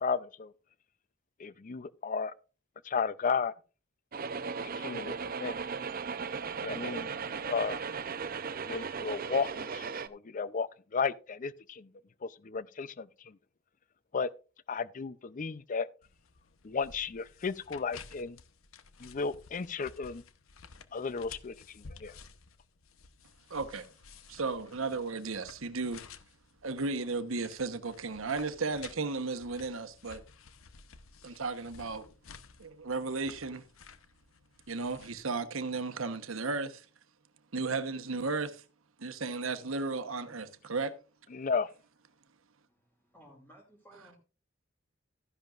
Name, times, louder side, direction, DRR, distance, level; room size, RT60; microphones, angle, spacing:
voice 1, 0.0-0.5 1.4-2.3 2.8-3.5 4.8-5.1 5.4-5.6 6.6-7.8 8.7-11.9 12.2-13.3 14.1-14.3 14.7-15.9 16.6-18.4 19.0-20.2 20.9-22.1 41.3-41.7, left 5 dB, 40° left, 0.5 m, -34 dB
sound 1, 4.1-10.1, right 5 dB, 45° right, 0.6 m, -37 dB
sound 2, 16.0-35.3, left 5 dB, 80° left, 0.9 m, -54 dB
voice 2, 23.5-23.9 24.3-26.0 26.6-30.2 31.2-32.1 32.6-33.6 34.7-36.9 37.5-38.6 39.0-40.9, right 3 dB, 75° right, 1.1 m, -34 dB
voice 3, 42.7-44.2, right 1 dB, 10° left, 2.4 m, -57 dB
13.5 x 10.5 x 2.5 m
head